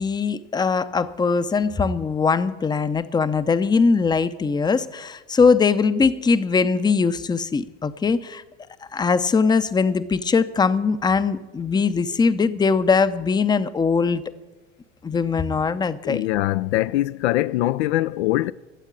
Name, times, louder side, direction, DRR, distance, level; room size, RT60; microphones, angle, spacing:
voice 1, 0.0-8.4 8.9-14.2 15.0-16.2, left 5 dB, 10° left, 0.6 m, -21 dB
voice 2, 16.0-18.5, left 16 dB, 65° left, 0.5 m, -22 dB
13.5 x 8.1 x 8.8 m
hypercardioid pair, 75°, 36 cm